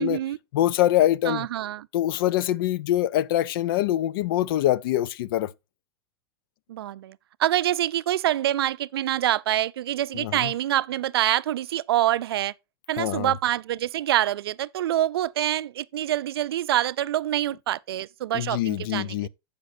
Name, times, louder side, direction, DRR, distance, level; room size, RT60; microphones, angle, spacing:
voice 1, 0.0-0.4 1.3-1.9 6.7-12.5 12.9-19.3, right 13 dB, 85° right, 0.4 m, -26 dB
voice 2, 0.5-1.5 1.9-5.5 10.1-10.5 13.0-13.3 18.3-19.3, left 13 dB, 65° left, 0.5 m, -24 dB
15.5 x 5.1 x 2.6 m
hypercardioid pair, 110°, 13 cm